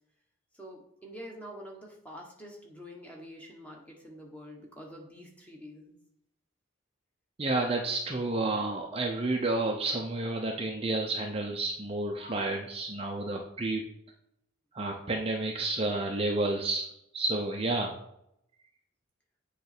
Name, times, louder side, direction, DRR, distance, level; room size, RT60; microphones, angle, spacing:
voice 1, 0.5-5.9, equal, 5° left, -1 dB, 1.4 m, -46 dB
voice 2, 7.4-13.8 14.7-16.9 17.1-18.0, right 2 dB, 30° right, 1 dB, 0.7 m, -30 dB
8.0 x 3.3 x 6.0 m, 0.78 s
head